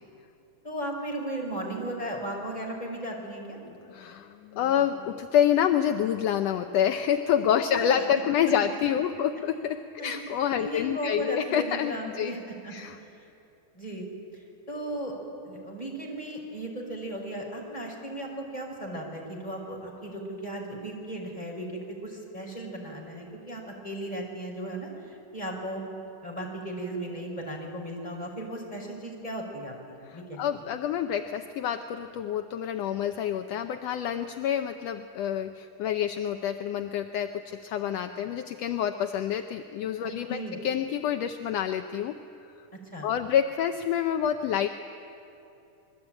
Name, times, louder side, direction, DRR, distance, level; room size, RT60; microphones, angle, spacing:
voice 1, 0.6-3.6 7.5-8.0 10.0-10.1 10.6-12.8 13.7-14.0 14.3-15.2 15.4-25.8 26.2-30.6 40.0-40.6 42.9-43.1, right 1 dB, 10° left, 0 dB, 5.2 m, -36 dB
voice 2, 3.9-12.3 12.7-13.0 30.1-42.1 43.0-44.7, left 9 dB, 75° left, 7 dB, 1.6 m, -27 dB
26.5 x 21.5 x 9.0 m, 2.8 s
omnidirectional pair, 3.6 m